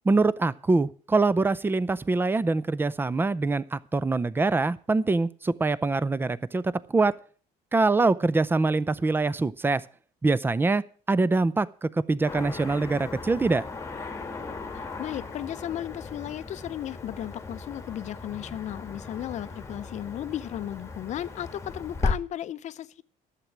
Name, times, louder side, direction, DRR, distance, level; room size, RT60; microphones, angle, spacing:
voice 1, 0.1-7.1 7.7-9.8 10.2-13.6, right 3 dB, 15° right, 0.5 m, -24 dB
Car passing by / Traffic noise roadway noise, 12.3-22.1, left 4 dB, 20° left, 1.4 m, -36 dB
voice 2, 14.7-23.0, left 11 dB, 50° left, 0.6 m, -35 dB
11.5 x 7.5 x 7.2 m
cardioid pair, 120°, 15 cm